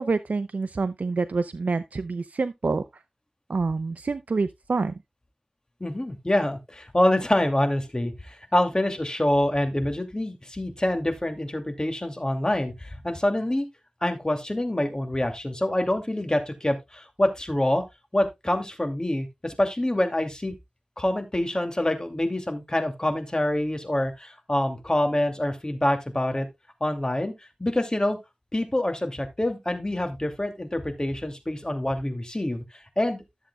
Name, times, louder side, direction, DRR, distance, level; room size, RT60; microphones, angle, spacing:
voice 1, 0.0-3.0 3.5-5.0, right 4 dB, 80° right, 0.5 m, -27 dB
voice 2, 5.8-13.7 14.0-17.8 18.1-20.5 21.0-26.5 26.8-27.3 27.6-28.2 28.5-32.6 33.0-33.2, left 1 dB, 30° left, 2.5 m, -26 dB
13.5 x 7.3 x 2.3 m
cardioid pair, 40°, 3 cm